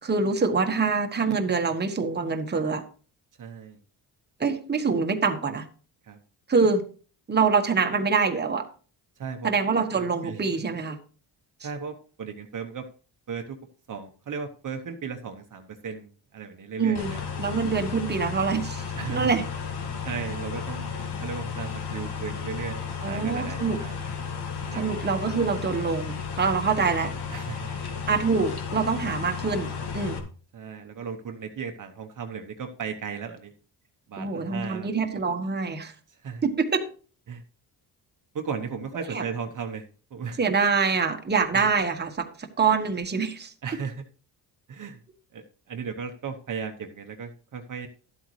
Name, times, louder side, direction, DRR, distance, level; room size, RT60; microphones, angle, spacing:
voice 1, 0.0-2.8 4.4-5.6 6.5-6.8 7.3-8.6 9.4-11.0 16.8-19.4 23.0-23.8 24.7-27.1 28.1-30.2 34.2-35.9 36.4-36.8 39.1-39.2 40.4-43.5, right 5 dB, 25° right, 5 dB, 1.3 m, -25 dB
voice 2, 3.4-3.8 6.0-6.2 9.2-9.5 9.9-10.4 11.6-12.9 13.3-13.6 13.9-17.2 18.9-19.3 20.0-20.9 21.2-24.0 24.7-25.1 27.3-27.7 30.5-33.5 34.1-35.3 36.1-36.4 37.3-37.4 38.3-40.4 41.5-41.6 43.6-44.0 44.7-45.0 45.3-47.9, right 6 dB, 45° right, 5 dB, 1.1 m, -36 dB
sound 1, 16.9-30.2, left 6 dB, 65° left, 2.0 m, -33 dB
12.0 x 8.0 x 3.2 m, 0.39 s
cardioid pair, 105°, 42 cm